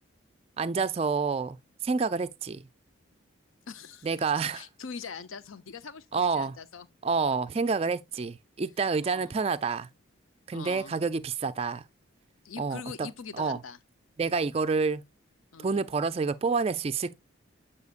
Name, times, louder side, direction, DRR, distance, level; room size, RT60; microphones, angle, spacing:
voice 1, 0.6-1.6 1.8-2.6 4.0-4.7 6.1-6.6 7.0-9.9 10.5-11.8 12.6-13.1 13.4-13.6 14.2-15.0 15.6-17.1, right 4 dB, 30° right, 0.3 m, -28 dB
voice 2, 3.7-4.1 4.5-6.9 9.0-9.3 10.5-10.9 12.4-13.8 15.5-15.8, left 5 dB, 80° left, 0.6 m, -42 dB
8.1 x 5.6 x 2.4 m
head